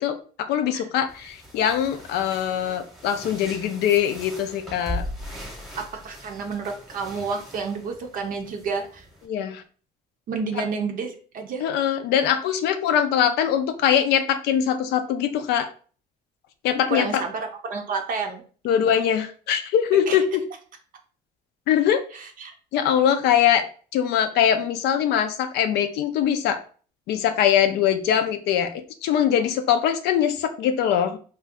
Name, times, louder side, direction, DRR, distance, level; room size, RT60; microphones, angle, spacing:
voice 1, 0.0-5.0 9.3-9.6 11.6-15.7 16.6-17.2 18.6-20.4 21.7-22.0 22.7-23.6 23.9-26.6 27.1-31.2, left 9 dB, 80° left, 8 dB, 0.4 m, -22 dB
sound 1, 1.1-9.3, equal, ahead, 0.8 m, -39 dB
voice 2, 5.8-9.0 10.3-11.6 16.9-18.4 20.1-20.2 22.1-22.5, right 4 dB, 55° right, 4 dB, 0.5 m, -30 dB
2.5 x 2.2 x 3.5 m, 0.41 s
cardioid pair, 110°, 17 cm